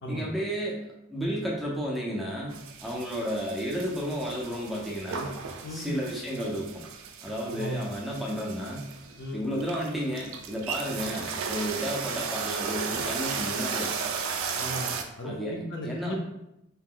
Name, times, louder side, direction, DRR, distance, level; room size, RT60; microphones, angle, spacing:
voice 1, 0.1-5.3 5.7-6.7 7.2-8.9 9.3-14.1 15.2-16.2, equal, ahead, -4 dB, 0.4 m, -32 dB
sound 1, 2.5-15.0, right 5 dB, 70° right, 0.4 m, -35 dB
voice 2, 7.5-7.9 9.2-9.4 14.6-16.2, equal, 55° left, 1 dB, 0.5 m, -36 dB
2.9 x 2.0 x 3.7 m, 0.86 s
head